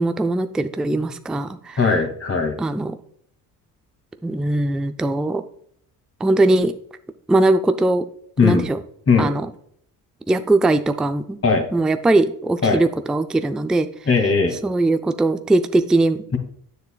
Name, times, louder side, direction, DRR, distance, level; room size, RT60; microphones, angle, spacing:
voice 1, 0.0-2.0 2.6-3.0 4.2-5.4 6.2-6.7 7.3-8.0 8.4-8.8 9.2-9.5 10.3-11.4 11.7-13.9 14.5-16.2, right 2 dB, ahead, 10 dB, 0.3 m, -20 dB
voice 2, 1.8-2.5 8.4-8.6 9.1-9.3 11.4-11.7 12.6-12.8 14.1-14.6, left 4 dB, 30° left, 3 dB, 2.2 m, -18 dB
9.5 x 6.6 x 2.3 m, 0.65 s
hypercardioid pair, 50°, 47 cm